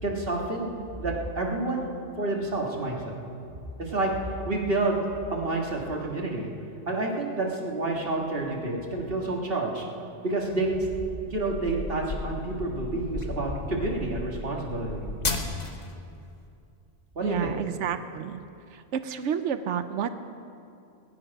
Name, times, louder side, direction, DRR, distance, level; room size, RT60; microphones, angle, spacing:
voice 1, 0.0-0.7 1.0-1.9 2.2-3.2 3.8-4.1 4.4-6.5 6.9-9.9 10.2-10.9 11.3-15.1 17.2-17.5, right 2 dB, 55° right, -1 dB, 2.0 m, -29 dB
sound 1, 10.8-15.9, left 3 dB, 40° left, 1.2 m, -34 dB
voice 2, 17.2-18.4 18.7-20.1, right 8 dB, 85° right, 10 dB, 1.0 m, -30 dB
20.0 x 10.5 x 5.4 m, 2.5 s
omnidirectional pair, 1.2 m